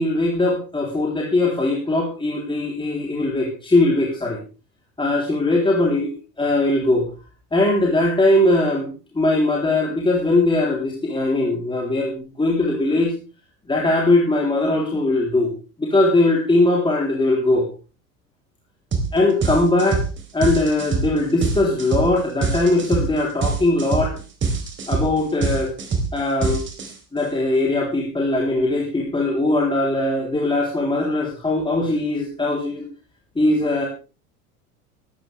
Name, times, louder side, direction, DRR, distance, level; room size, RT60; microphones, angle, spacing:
voice 1, 0.0-4.4 5.0-6.1 6.4-7.1 7.5-13.1 13.7-15.5 15.8-17.7 19.1-20.0 20.3-24.2 24.9-25.7 26.1-26.6 27.1-32.8 33.4-33.9, left 2 dB, 10° left, -2 dB, 3.5 m, -20 dB
sound 1, 18.9-19.1 19.4-27.2, right 4 dB, 25° right, 3.9 m, -24 dB
16.5 x 13.5 x 3.4 m, 0.34 s
figure-of-eight pair, 75°, 45 cm